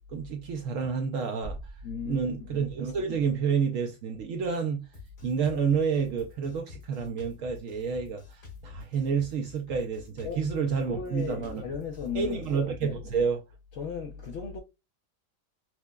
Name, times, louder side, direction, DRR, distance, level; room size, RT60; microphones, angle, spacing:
voice 1, 0.1-1.6 2.0-4.9 5.2-11.6 12.1-13.4, right 6 dB, 70° right, 0.8 m, -29 dB
sound 1, 1.4-3.2, right 2 dB, 40° right, 0.6 m, -45 dB
voice 2, 1.8-2.6 10.2-12.5 12.8-13.2 13.7-14.6, left 6 dB, 75° left, 0.6 m, -36 dB
Drum kit, 4.9-12.9, left 5 dB, 55° left, 2.1 m, -49 dB
5.8 x 2.1 x 2.2 m
omnidirectional pair, 1.7 m